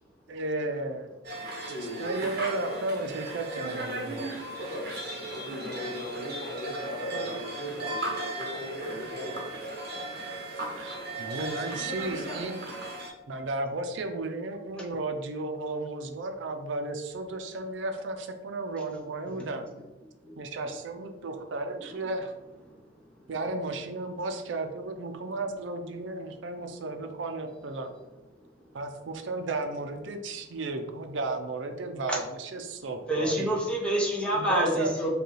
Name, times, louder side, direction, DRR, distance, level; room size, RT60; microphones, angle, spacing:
voice 1, 0.3-1.1 2.0-4.3 9.7-9.8 10.8-12.7 13.3-19.6 20.4-22.3 23.3-27.9 28.7-33.5 34.3-34.9, right 2 dB, 70° right, 6 dB, 0.5 m, -34 dB
sound 1, 1.2-13.1, right 2 dB, 55° right, 0.9 m, -36 dB
voice 2, 1.7-2.0 5.2-9.5, left 1 dB, 50° left, -1 dB, 1.0 m, -38 dB
voice 3, 33.1-35.2, right 1 dB, 5° left, -3 dB, 0.8 m, -27 dB
4.9 x 2.3 x 3.1 m, 1.1 s
head